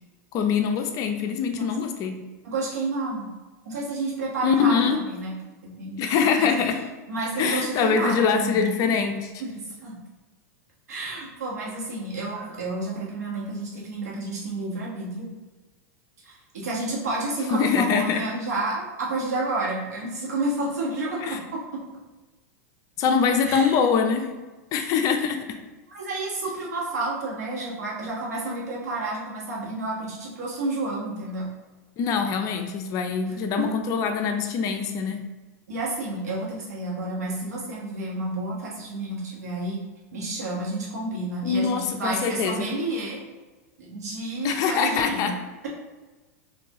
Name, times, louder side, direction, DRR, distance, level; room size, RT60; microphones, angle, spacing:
voice 1, 0.3-2.2 4.4-5.0 6.0-6.8 7.4-9.3 17.5-18.2 21.2-21.4 23.0-24.3 24.7-25.5 32.0-35.2 41.4-42.7 44.4-45.3, left 6 dB, 45° left, 6 dB, 0.5 m, -23 dB
voice 2, 2.4-3.3 3.6-5.3 5.6-6.5 7.1-8.6 9.4-9.9 10.9-15.3 16.2-21.8 23.4-23.7 25.9-31.5 33.2-33.8 35.7-39.8 40.1-43.2 43.8-45.3, right 2 dB, 85° right, -4 dB, 1.4 m, -30 dB
4.5 x 2.7 x 2.9 m, 1.2 s
hypercardioid pair, 110°, 9 cm